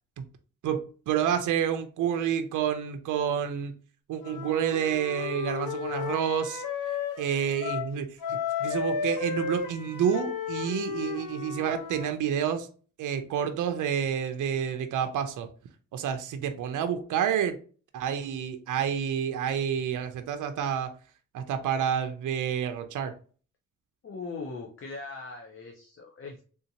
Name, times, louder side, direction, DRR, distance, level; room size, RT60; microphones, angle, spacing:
voice 1, 0.6-3.7 4.1-6.6 7.2-12.7 13.0-15.5 15.9-17.6 17.9-20.9 21.3-23.1, right 8 dB, 75° right, 0.5 m, -29 dB
Wind instrument woodwind instrument, 4.2-7.9 8.2-12.2, left 6 dB, 85° left, 0.8 m, -34 dB
voice 2, 24.0-26.4, left 4 dB, 45° left, 0.6 m, -40 dB
3.5 x 2.8 x 2.7 m
cardioid pair, 105°, 31 cm